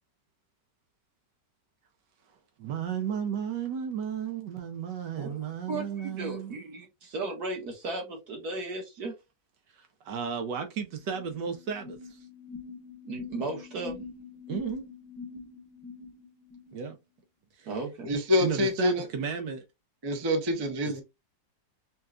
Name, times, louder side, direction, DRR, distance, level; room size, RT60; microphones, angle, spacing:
voice 1, 2.6-6.6 9.7-12.2 14.5-14.8 16.7-17.0 17.6-17.7 18.4-19.6, right 7 dB, 75° right, 1.4 m, -34 dB
voice 2, 5.7-9.1 13.0-14.0 17.7-18.1, right 2 dB, 60° right, 1.9 m, -35 dB
sound 1, 10.7-10.8 11.0-16.7, left 5 dB, 20° left, 0.8 m, -44 dB
voice 3, 18.0-19.0 20.0-21.0, left 1 dB, 35° right, 0.3 m, -26 dB
5.5 x 2.4 x 2.4 m
omnidirectional pair, 1.9 m